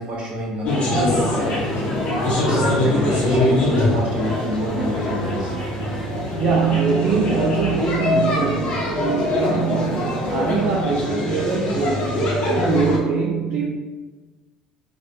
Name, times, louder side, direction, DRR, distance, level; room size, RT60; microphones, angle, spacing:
voice 1, 0.0-1.8 2.4-5.5, equal, 40° right, -3 dB, 1.0 m, -27 dB
sound 1, 0.6-13.0, left 1 dB, 45° left, 0.8 m, -23 dB
sound 2, 1.4-6.3, equal, 15° right, 1.0 m, -37 dB
voice 2, 6.1-12.3 12.5-13.7, right 5 dB, 55° right, -2 dB, 0.4 m, -23 dB
3.0 x 2.2 x 2.6 m, 1.3 s
hypercardioid pair, 65°, 3 cm